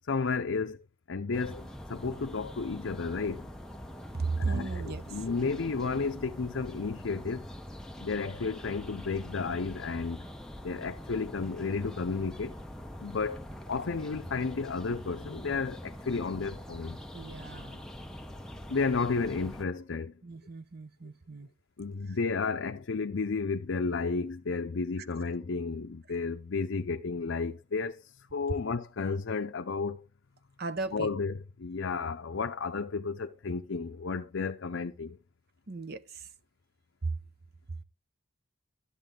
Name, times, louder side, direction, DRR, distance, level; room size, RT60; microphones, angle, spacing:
voice 1, 0.0-3.5 4.4-7.5 8.0-10.2 10.6-12.5 13.0-17.0 18.7-20.2 21.8-30.0 30.9-35.2, left 4 dB, 70° left, 0.6 m, -32 dB
sound 1, 1.3-19.7, equal, 5° left, 0.7 m, -44 dB
voice 2, 4.2-5.0 17.1-17.8 20.2-21.5 30.6-31.1 35.7-36.3 37.0-37.1, right 3 dB, 50° right, 0.8 m, -35 dB
13.0 x 8.5 x 3.8 m
head